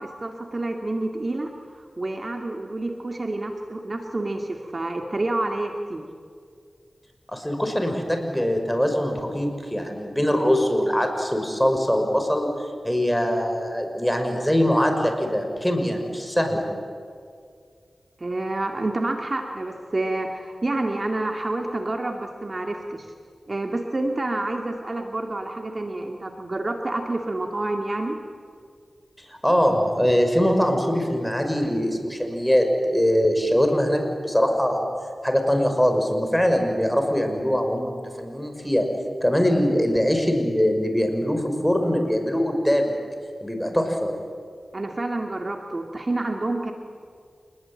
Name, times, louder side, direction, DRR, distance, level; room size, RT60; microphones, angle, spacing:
voice 1, 0.0-6.1 18.2-23.1 23.5-28.2 44.7-46.7, right 2 dB, 45° right, 3 dB, 2.1 m, -28 dB
voice 2, 7.3-16.7 29.3-34.9 35.2-38.9 39.2-42.9 43.4-44.1, equal, 5° left, 4 dB, 5.8 m, -22 dB
28.0 x 20.5 x 8.9 m, 2.2 s
cardioid pair, 45°, 0 cm